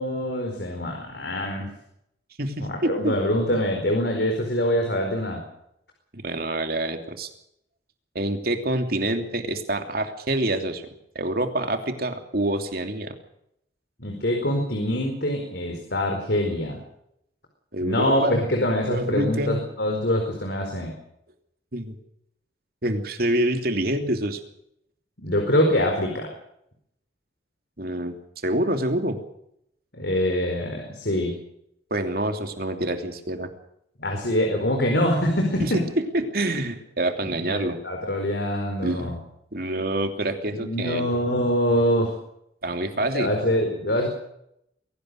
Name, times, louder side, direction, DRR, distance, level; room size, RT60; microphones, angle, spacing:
voice 1, 0.0-1.7 2.6-5.4 14.0-16.8 17.8-21.0 25.2-26.3 29.9-31.4 34.0-35.8 37.2-39.2 40.6-42.1 43.1-44.1, left 1 dB, 65° left, 2 dB, 4.6 m, -24 dB
voice 2, 2.4-3.2 6.1-7.3 8.1-10.8 11.1-13.2 17.7-18.4 18.9-19.6 21.7-21.9 22.8-24.4 27.8-28.1 28.4-29.2 31.9-33.5 35.6-35.7 36.1-37.8 38.8-39.1 39.5-41.0 42.6-43.3, right 1 dB, 55° right, 6 dB, 2.9 m, -26 dB
23.0 x 18.0 x 6.5 m, 0.76 s
head